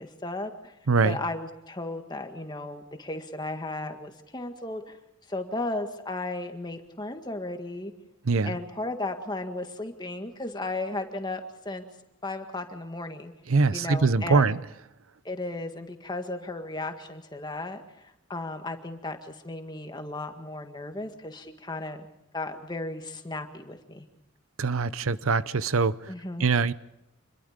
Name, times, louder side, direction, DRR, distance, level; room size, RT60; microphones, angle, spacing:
voice 1, 0.0-0.7 1.0-5.0 5.3-7.9 8.4-11.9 12.2-13.3 13.7-14.5 15.2-22.1 22.3-24.1 26.1-26.5, left 2 dB, 20° left, 6 dB, 1.8 m, -35 dB
voice 2, 0.9-1.2 8.2-8.6 13.5-14.6 24.6-26.0 26.4-26.7, right 4 dB, 85° right, 17 dB, 0.7 m, -23 dB
26.5 x 21.5 x 5.2 m, 0.87 s
head